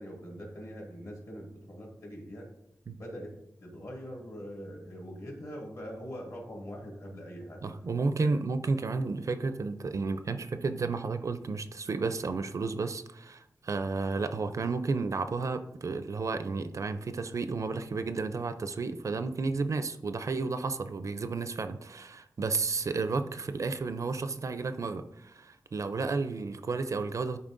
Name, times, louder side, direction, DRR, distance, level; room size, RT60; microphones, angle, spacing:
voice 1, 0.0-2.5 3.0-3.3 3.6-7.6 8.2-8.3, equal, 55° left, -2 dB, 2.3 m, -43 dB
voice 2, 7.6-27.4, right 4 dB, 50° right, 10 dB, 0.4 m, -32 dB
11.0 x 4.3 x 2.6 m, 0.80 s
wide cardioid pair, 125°, 7 cm